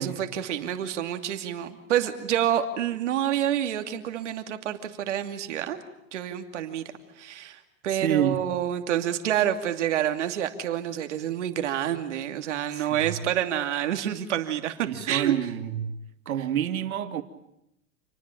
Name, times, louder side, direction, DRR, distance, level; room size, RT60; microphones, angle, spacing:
voice 1, 0.0-5.8 6.1-6.8 7.2-15.3, right 10 dB, 55° right, 2.8 m, -28 dB
voice 2, 7.9-8.4 12.7-13.1 14.9-15.9 16.3-17.2, right 10 dB, 75° right, 2.4 m, -28 dB
28.5 x 20.0 x 9.2 m
supercardioid pair, 180°, 42 cm